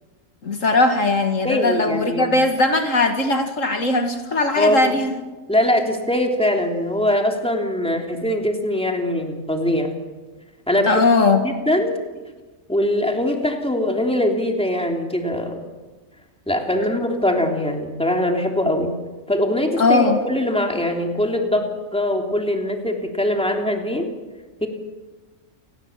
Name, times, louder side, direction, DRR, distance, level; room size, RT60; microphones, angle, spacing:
voice 1, 0.4-5.2 10.9-11.4 19.8-20.2, left 3 dB, 65° left, 5 dB, 2.3 m, -19 dB
voice 2, 1.4-2.3 4.6-4.9 5.5-9.9 10.7-11.0 11.4-12.0 12.7-15.6 16.5-18.9 19.3-24.1 24.6-24.7, left 1 dB, 5° left, 2 dB, 3.2 m, -22 dB
29.5 x 19.5 x 7.5 m, 1.2 s
omnidirectional pair, 1.4 m